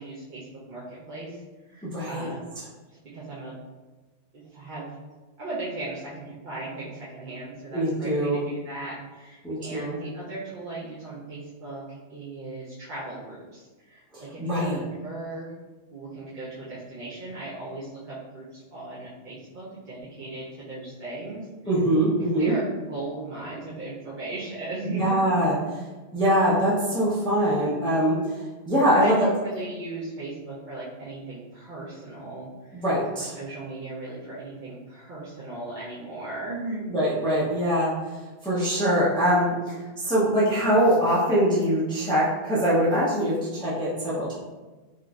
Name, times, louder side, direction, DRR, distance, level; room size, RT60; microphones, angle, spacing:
voice 1, 0.0-1.4 1.7-2.4 3.1-3.5 4.3-4.9 5.4-15.5 15.9-21.5 22.4-25.3 28.8-32.8 33.2-36.9, right 2 dB, 50° right, -9 dB, 0.7 m, -37 dB
voice 2, 1.8-2.3 7.7-8.4 9.4-10.0 14.1-14.8 21.7-22.5 24.9-25.6 26.1-29.3 32.7-33.3 36.9-37.9 38.4-44.4, equal, 5° left, -8 dB, 0.6 m, -23 dB
3.7 x 2.5 x 2.3 m, 1.2 s
omnidirectional pair, 1.2 m